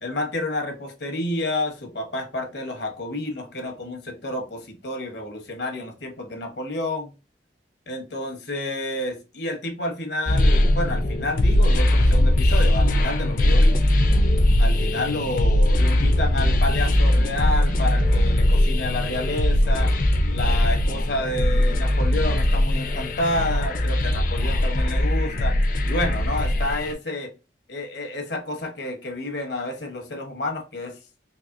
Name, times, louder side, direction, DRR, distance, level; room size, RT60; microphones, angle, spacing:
voice 1, 0.0-7.1 7.9-13.8 14.6-19.9 20.3-25.6 25.9-27.3 27.7-31.0, left 1 dB, 75° left, 1.1 m, -30 dB
sound 1, 10.3-26.9, left 1 dB, 50° left, 0.5 m, -20 dB
4.1 x 2.8 x 2.5 m
head